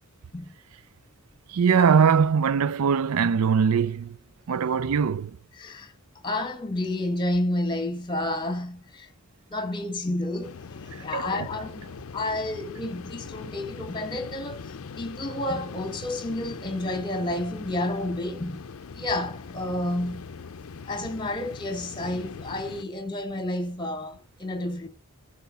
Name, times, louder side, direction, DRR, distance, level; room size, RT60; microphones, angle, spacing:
voice 1, 1.5-4.1 4.5-5.3 11.1-11.5, right 6 dB, 85° right, 0.4 m, -21 dB
voice 2, 5.5-5.9 6.2-9.1 9.5-18.6 18.9-20.3 20.9-24.9, left 1 dB, 20° left, 1.7 m, -30 dB
sound 1, 10.4-22.9, left 5 dB, 70° left, 0.5 m, -41 dB
11.5 x 4.8 x 6.9 m
head